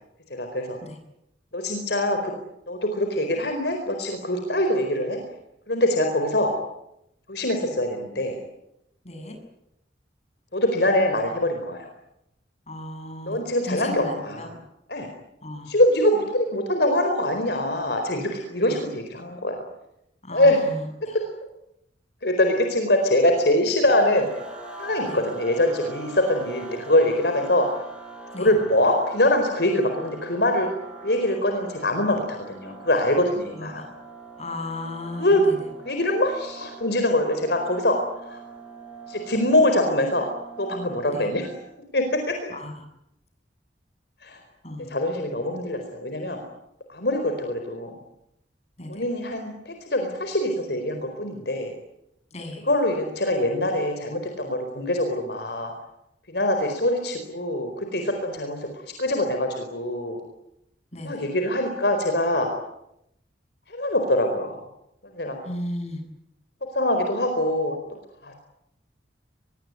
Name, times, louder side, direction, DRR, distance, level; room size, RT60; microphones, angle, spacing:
voice 1, 0.3-0.8 1.5-2.3 2.7-5.2 5.7-6.5 7.3-8.4 10.5-11.9 13.3-14.5 14.9-15.1 15.7-19.6 20.3-20.7 21.1-21.3 22.2-24.3 24.8-27.7 28.4-30.7 31.0-33.9 35.2-35.4 35.8-38.0 38.2-38.4 39.1-40.3 40.6-41.6 41.9-42.3 44.2-44.4 44.9-46.4 46.9-47.9 48.9-51.7 52.6-55.7 56.3-58.7 59.0-60.2 61.0-62.5 63.7-64.6 65.1-65.4 66.7-68.3, left 1 dB, 65° left, 5 dB, 4.5 m, -23 dB
voice 2, 9.0-9.4 12.7-13.4 13.6-14.5 15.4-15.7 18.7-18.8 20.2-21.2 25.1-25.2 28.3-28.5 33.5-33.8 34.4-35.6 41.1-41.3 42.5-42.7 44.6-44.9 48.8-49.0 52.3-52.6 60.9-61.2 65.4-66.0, left 1 dB, 35° left, 5 dB, 7.7 m, -35 dB
sound 1, 23.9-41.7, right 3 dB, 5° right, 7.5 m, -42 dB
23.5 x 22.5 x 9.7 m, 0.82 s
head